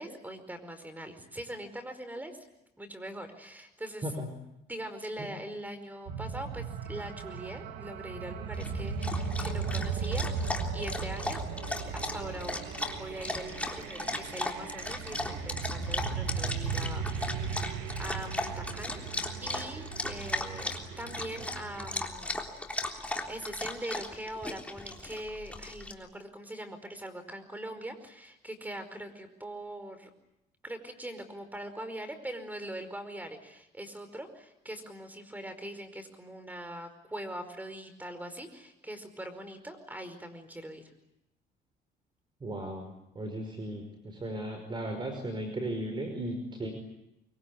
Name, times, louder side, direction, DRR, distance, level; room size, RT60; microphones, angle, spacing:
voice 1, 0.0-2.4 2.8-4.1 4.7-11.4 11.9-12.6 13.0-17.1 18.0-19.0 19.4-20.7 21.0-22.4 22.9-30.1 30.6-40.9, right 1 dB, 10° right, 9 dB, 4.9 m, -42 dB
sound 1, 6.1-22.0, right 5 dB, 80° right, 2.6 m, -37 dB
Dog, 8.5-25.9, left 2 dB, 10° left, 3.6 m, -37 dB
voice 2, 42.4-46.7, right 1 dB, 30° right, 5 dB, 5.3 m, -36 dB
24.0 x 24.0 x 9.6 m, 0.84 s
cardioid pair, 110°, 17 cm